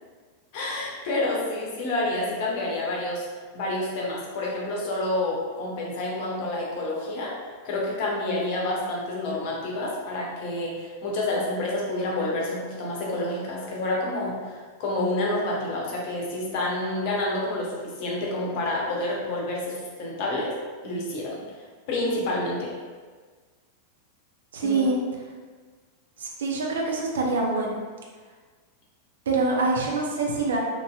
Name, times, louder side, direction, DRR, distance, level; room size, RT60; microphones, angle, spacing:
voice 1, 0.5-3.3 3.5-7.3 7.6-20.5 20.8-21.4 21.9-22.7 24.6-24.9, left 2 dB, 50° left, -3 dB, 0.7 m, -28 dB
voice 2, 24.5-25.0 26.2-27.7 29.3-30.6, right 3 dB, 65° right, -1 dB, 0.5 m, -25 dB
2.9 x 2.6 x 2.2 m, 1.5 s
figure-of-eight pair, 90°, 0 cm